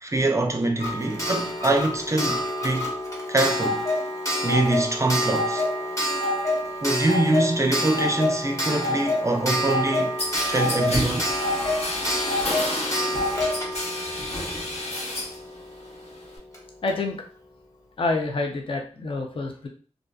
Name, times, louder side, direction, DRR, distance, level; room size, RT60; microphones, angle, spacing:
voice 1, 0.0-2.9 3.3-3.8 4.4-5.6 6.8-10.2 10.5-11.3, right 2 dB, 25° right, 0.4 m, -24 dB
Clock, 0.8-15.4 16.5-16.6 16.9-17.0, left 1 dB, 25° left, 1.0 m, -27 dB
sound 1, 10.2-15.4 15.7-16.4, left 1 dB, 65° left, 0.9 m, -30 dB
voice 2, 16.8-17.2 18.0-19.7, left 3 dB, 50° left, 0.4 m, -27 dB
2.4 x 2.4 x 2.3 m
cardioid pair, 50°, 12 cm